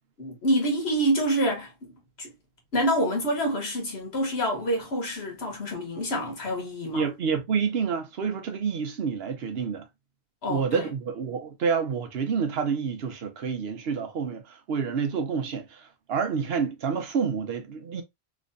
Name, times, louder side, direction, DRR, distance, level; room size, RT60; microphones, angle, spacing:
voice 1, 0.2-2.3 2.7-7.1 10.4-10.9, equal, 80° left, 1.5 m, -27 dB
voice 2, 6.9-9.9 10.5-18.0, right 6 dB, 75° right, 1.0 m, -28 dB
3.2 x 3.0 x 2.5 m
omnidirectional pair, 1.0 m